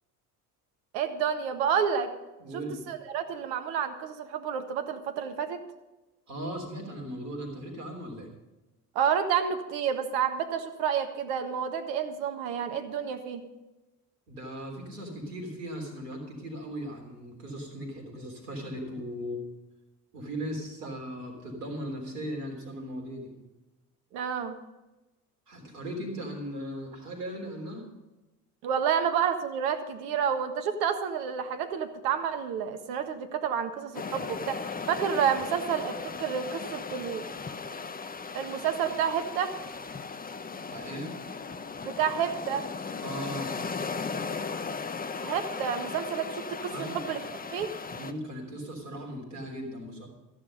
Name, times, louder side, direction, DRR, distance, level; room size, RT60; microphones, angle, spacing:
voice 1, 0.9-2.1 2.5-5.6 8.9-13.4 24.1-24.6 28.6-37.2 38.3-39.5 41.8-42.6 45.2-47.2 47.5-47.7, right 8 dB, 65° right, 7 dB, 1.6 m, -29 dB
voice 2, 2.4-2.7 6.3-8.3 14.3-19.4 20.1-23.3 25.5-27.9 40.7-41.1 43.0-43.5 46.7-47.0 48.0-50.1, equal, 80° right, 2 dB, 3.6 m, -38 dB
sound 1, 33.9-48.1, left 4 dB, 20° left, 0.9 m, -37 dB
14.0 x 11.0 x 5.2 m, 1.0 s
figure-of-eight pair, 55°, 46 cm